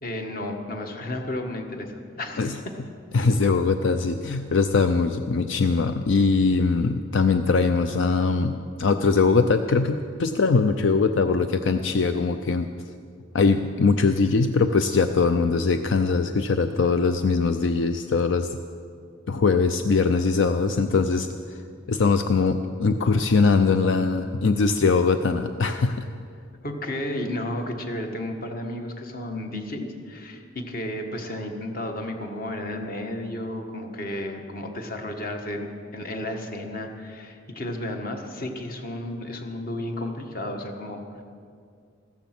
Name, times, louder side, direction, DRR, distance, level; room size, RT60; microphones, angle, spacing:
voice 1, 0.0-2.7 26.6-41.2, left 1 dB, 45° left, 4 dB, 1.4 m, -33 dB
voice 2, 3.1-12.7 13.3-18.6 19.3-21.6 21.9-26.1, left 4 dB, 75° left, 8 dB, 0.5 m, -22 dB
15.0 x 14.0 x 6.0 m, 2.3 s
head